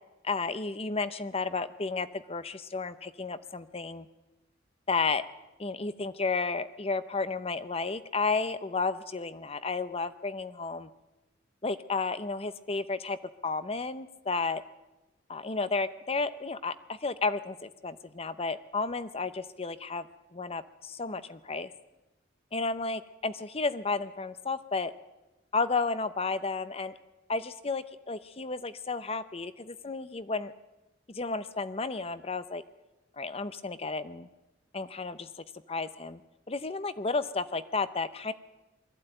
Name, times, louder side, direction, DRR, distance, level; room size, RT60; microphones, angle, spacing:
voice 1, 0.2-4.1 4.9-5.2 5.6-10.9 11.6-13.2 13.4-14.6 15.3-20.1 20.3-21.7 22.5-24.9 25.5-27.0 27.3-30.5 31.1-32.6 33.2-34.3 34.7-35.3 35.7-36.2 36.5-38.3, left 4 dB, 30° left, 13 dB, 0.8 m, -32 dB
21.0 x 14.5 x 9.0 m, 1.0 s
head